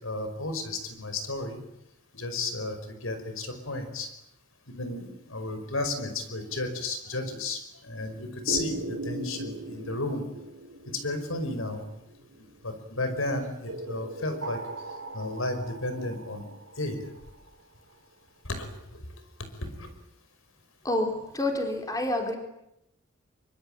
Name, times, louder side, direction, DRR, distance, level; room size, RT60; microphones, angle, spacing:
voice 1, 0.0-1.6 2.1-4.1 4.7-10.2 10.9-11.8 12.4-14.6 15.1-16.5 16.8-17.0 18.5-19.0 19.6-19.9, left 2 dB, 85° left, 8 dB, 5.4 m, -33 dB
sound 1, 8.5-12.7 13.7-17.5, right 2 dB, 75° right, 4.4 m, -39 dB
voice 2, 20.8-22.4, left 1 dB, 15° left, 3 dB, 4.3 m, -28 dB
25.0 x 24.0 x 9.1 m, 0.83 s
head